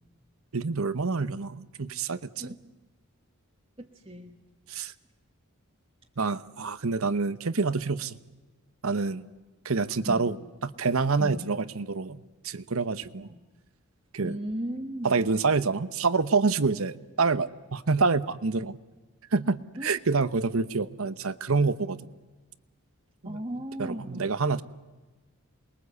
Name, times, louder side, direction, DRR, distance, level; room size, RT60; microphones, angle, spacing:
voice 1, 0.5-2.5 4.7-4.9 6.2-8.2 8.8-9.2 9.6-10.4 10.6-13.3 14.1-14.4 15.0-18.8 19.3-22.0 23.2-23.4 23.8-24.6, right 4 dB, 75° right, 14 dB, 0.9 m, -27 dB
voice 2, 2.4-2.7 3.8-4.4 10.1-10.3 11.2-11.5 13.3-13.4 14.2-15.2 19.8-20.0 23.2-24.3, right 1 dB, 25° right, 0 dB, 1.5 m, -36 dB
28.0 x 22.0 x 8.2 m, 1.3 s
head